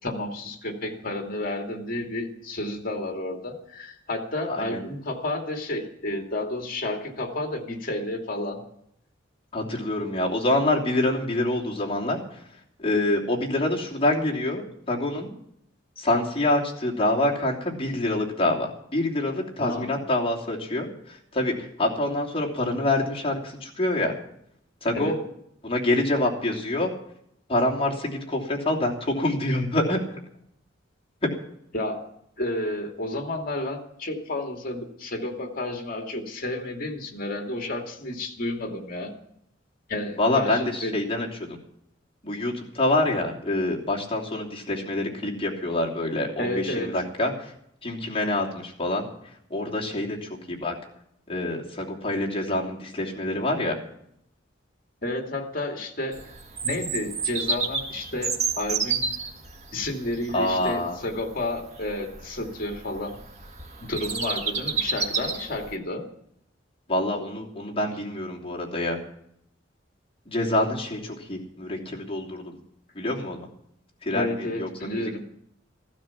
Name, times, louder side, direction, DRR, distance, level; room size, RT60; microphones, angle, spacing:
voice 1, 0.0-8.6 19.6-20.0 24.9-25.2 31.7-32.1 32.4-39.1 39.9-41.0 46.4-47.0 55.0-56.2 56.6-59.1 59.7-63.2 63.8-66.1 74.1-75.2, left 1 dB, 50° left, 3 dB, 2.5 m, -31 dB
voice 2, 4.5-4.8 9.5-12.4 12.8-15.3 16.0-24.1 24.8-25.1 25.6-26.9 27.5-30.2 31.2-31.3 40.2-41.6 42.2-47.5 47.8-49.0 49.5-50.7 51.3-53.8 60.3-61.0 66.9-69.0 70.3-72.6 72.9-73.5 74.0-75.1, left 1 dB, 30° left, -2 dB, 3.0 m, -26 dB
Bird vocalization bird call bird song, 56.1-65.8, right 4 dB, 35° right, 1.7 m, -31 dB
15.5 x 12.5 x 6.0 m, 0.73 s
head